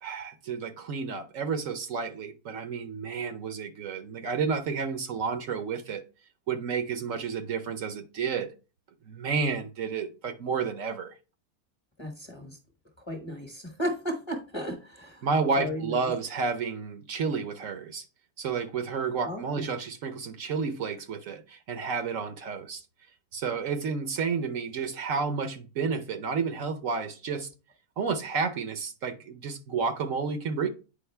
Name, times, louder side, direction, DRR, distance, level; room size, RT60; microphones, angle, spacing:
voice 1, 0.0-6.0 6.5-8.5 9.0-11.1 15.2-18.0 18.4-22.8 23.3-27.5 28.0-30.7, right 5 dB, 65° right, 1.1 m, -31 dB
voice 2, 12.0-12.6 13.1-15.3 15.6-16.1 19.2-19.7, equal, 20° left, 1.1 m, -35 dB
8.6 x 5.1 x 3.3 m
omnidirectional pair, 1.6 m